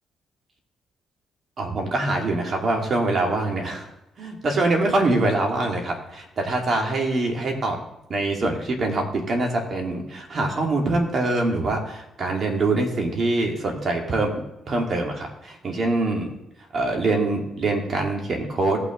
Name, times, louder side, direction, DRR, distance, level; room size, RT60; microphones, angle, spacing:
voice 1, 1.6-3.9 4.2-7.8 8.1-16.3 16.7-18.8, right 2 dB, 45° right, 1 dB, 2.5 m, -24 dB
18.0 x 6.1 x 3.9 m, 0.86 s
cardioid pair, 90°, 0 cm